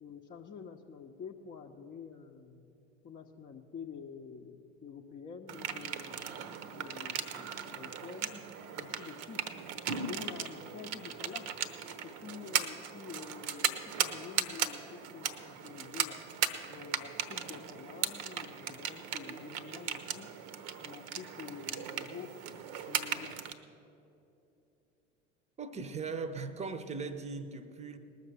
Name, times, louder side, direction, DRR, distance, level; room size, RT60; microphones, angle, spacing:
voice 1, 0.0-2.7 3.0-6.4 6.8-8.4 8.8-9.4 10.0-11.5 12.0-16.2 16.7-20.3 20.8-22.3 22.9-23.4, left 6 dB, 25° left, 0.7 m, -48 dB
sound 1, 5.5-23.5, right 8 dB, 45° right, 0.9 m, -37 dB
voice 2, 25.6-28.0, right 4 dB, 20° right, 0.8 m, -39 dB
19.5 x 6.6 x 6.8 m
figure-of-eight pair, 75°, 36 cm